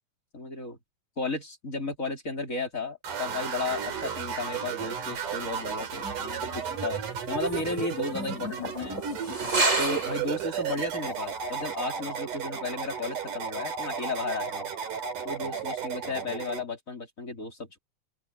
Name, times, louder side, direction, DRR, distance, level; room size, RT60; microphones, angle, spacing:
voice 1, 0.3-0.8 1.2-9.0 9.8-14.7 15.2-17.8, left 3 dB, 25° left, 4.1 m, -34 dB
sound 1, 3.0-16.6, right 7 dB, 75° right, 4.4 m, -34 dB
sound 2, 5.2-10.6 10.9-11.0 11.4-11.6, right 2 dB, 20° right, 4.9 m, -32 dB
open air
omnidirectional pair, 3.8 m